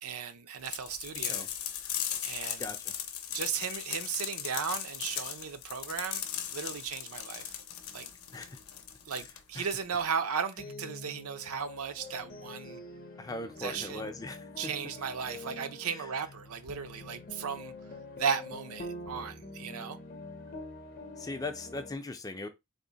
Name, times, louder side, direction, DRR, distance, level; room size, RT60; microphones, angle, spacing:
voice 1, 0.0-1.5 2.2-2.7 3.3-6.2 6.5-7.5 7.9-8.1 9.1-12.8 13.6-14.1 14.6-17.7 18.2-20.0, right 6 dB, 80° right, 0.5 m, -36 dB
sound 1, 0.7-10.0, left 10 dB, 75° left, 0.6 m, -38 dB
voice 2, 2.6-2.9 8.3-8.6 9.1-9.2 9.5-9.7 13.2-14.7 15.9-16.1 21.2-22.5, left 2 dB, 15° left, 0.4 m, -40 dB
sound 2, 10.6-22.0, left 2 dB, 40° left, 0.7 m, -46 dB
3.5 x 2.1 x 3.9 m
head